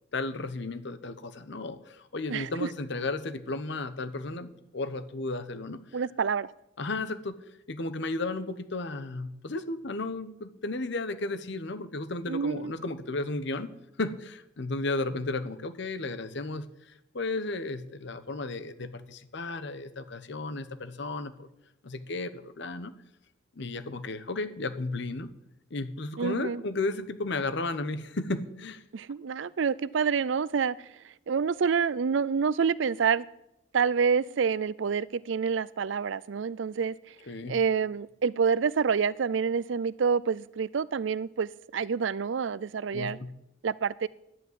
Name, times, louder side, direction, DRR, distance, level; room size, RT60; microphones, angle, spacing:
voice 1, 0.1-5.8 6.8-7.4 7.7-13.7 14.0-16.7 17.1-21.5 21.8-22.9 23.6-25.3 25.7-28.8 37.3-37.6 42.9-43.3, left 2 dB, 65° left, 1.0 m, -34 dB
voice 2, 2.3-2.7 5.9-6.5 12.3-12.7 26.2-26.6 28.9-30.8 31.3-33.3 33.7-36.9 37.5-43.2 43.6-44.1, right 6 dB, 65° right, 0.4 m, -27 dB
11.0 x 8.3 x 9.3 m
head